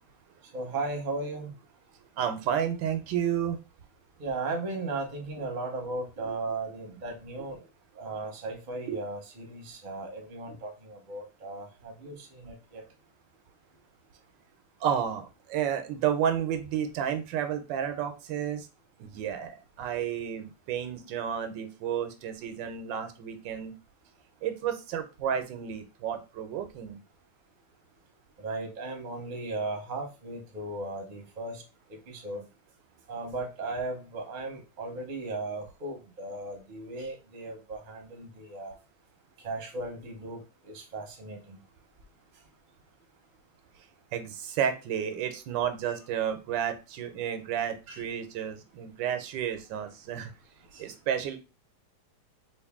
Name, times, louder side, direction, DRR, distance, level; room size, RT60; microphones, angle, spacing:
voice 1, 0.5-1.5 4.2-7.6 8.0-12.8 28.4-31.6 31.9-32.5 33.1-38.7 39.4-40.4 40.7-41.6 47.9-48.0 50.7-50.8, right 2 dB, 40° right, 2 dB, 0.7 m, -36 dB
voice 2, 2.2-3.6 8.9-9.0 14.8-18.7 19.0-19.5 19.8-23.7 24.4-27.0 44.1-50.3 50.8-51.4, right 9 dB, 90° right, 9 dB, 1.3 m, -31 dB
3.2 x 2.5 x 3.5 m, 0.29 s
omnidirectional pair, 2.0 m